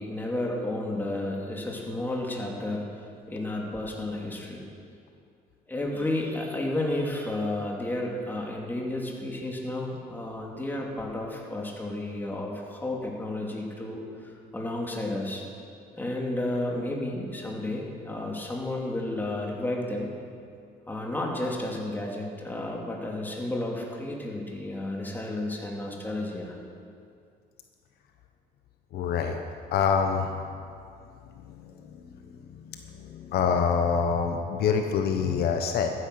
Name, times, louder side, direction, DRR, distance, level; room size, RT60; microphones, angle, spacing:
voice 1, 0.0-2.9 3.3-4.6 5.7-15.4 15.9-20.1 20.9-26.6, left 1 dB, 10° left, -1 dB, 2.6 m, -32 dB
voice 2, 28.9-29.4 29.7-30.3 31.5-31.6 32.5-35.9, left 6 dB, 70° left, 5 dB, 1.1 m, -26 dB
14.0 x 9.9 x 6.6 m, 2.4 s
cardioid pair, 110°, 17 cm